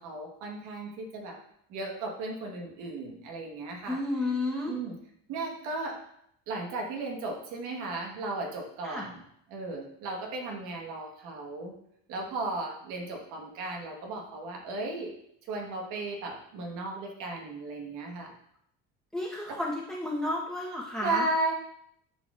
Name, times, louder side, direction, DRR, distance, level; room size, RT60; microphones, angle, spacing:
voice 1, 0.0-1.4 1.7-4.0 4.6-5.0 5.3-6.0 6.5-9.2 9.5-11.7 12.1-15.1 15.4-18.3 19.5-19.6 21.0-21.5, right 2 dB, 85° right, 0 dB, 1.5 m, -35 dB
voice 2, 3.9-4.7 8.8-9.0 19.1-21.3, left 2 dB, ahead, -4 dB, 1.1 m, -32 dB
11.0 x 4.1 x 2.5 m, 0.71 s
cardioid pair, 105°, 29 cm